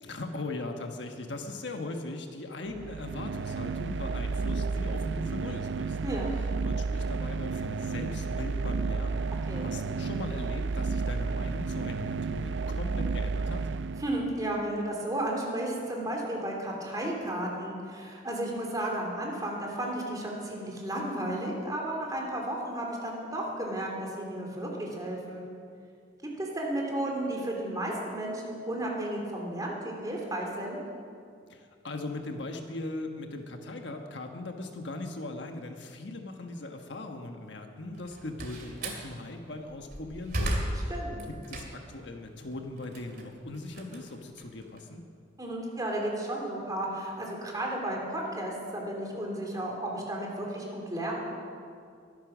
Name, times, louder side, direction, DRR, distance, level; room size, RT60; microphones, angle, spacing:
voice 1, 0.0-6.0 6.6-13.7 31.5-41.0 41.3-45.0, left 2 dB, 65° left, 4 dB, 1.4 m, -39 dB
sound 1, 2.7-14.5, right 4 dB, 65° right, 0.4 m, -32 dB
voice 2, 6.0-6.3 9.5-9.7 14.0-25.4 26.4-30.8 40.9-41.2 45.4-51.2, right 1 dB, 20° right, -1 dB, 3.0 m, -33 dB
Slam, 37.9-39.1 39.6-42.0 42.4-44.8, right 1 dB, 50° right, 2.5 m, -35 dB
22.5 x 10.5 x 6.2 m, 2.3 s
head